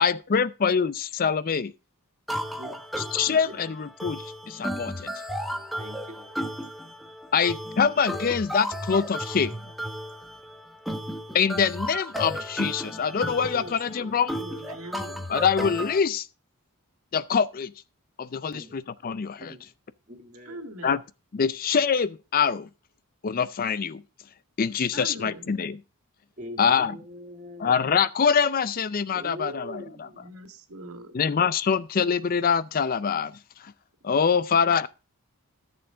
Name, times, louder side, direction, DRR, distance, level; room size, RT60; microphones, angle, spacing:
voice 1, 0.0-1.7 3.1-5.1 7.3-9.6 11.3-14.3 15.3-16.3 17.1-17.7 18.2-19.5 20.8-21.0 21.3-22.7 23.2-24.0 24.6-25.7 26.6-26.9 27.6-29.8 31.1-33.3 33.6-33.7 34.0-34.9, left 6 dB, 40° left, 0.4 m, -24 dB
sound 1, 2.3-16.0, equal, ahead, 1.1 m, -34 dB
voice 2, 5.8-6.4 10.4-10.6 13.5-14.1 18.4-18.8 19.4-19.7 20.1-20.6 26.4-27.9 29.1-30.3 31.0-31.2, equal, 35° right, 2.3 m, -43 dB
voice 3, 14.4-15.3 20.5-21.0 24.9-25.5 30.1-31.2 34.0-34.1, right 1 dB, 75° right, 1.9 m, -42 dB
14.0 x 7.0 x 3.7 m
head